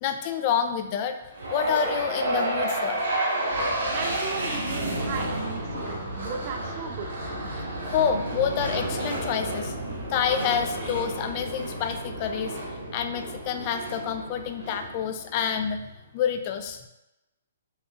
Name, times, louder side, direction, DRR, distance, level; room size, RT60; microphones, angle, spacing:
voice 1, 0.0-1.2 1.5-3.0 7.8-9.7 10.1-12.6 12.9-16.8, left 8 dB, 35° left, 7 dB, 0.4 m, -28 dB
sound 1, 1.3-15.5, right 1 dB, 80° right, 1.3 m, -31 dB
voice 2, 3.9-7.1, right 5 dB, 40° right, 3 dB, 0.5 m, -36 dB
4.4 x 3.0 x 2.4 m, 0.94 s
hypercardioid pair, 150°, 0 cm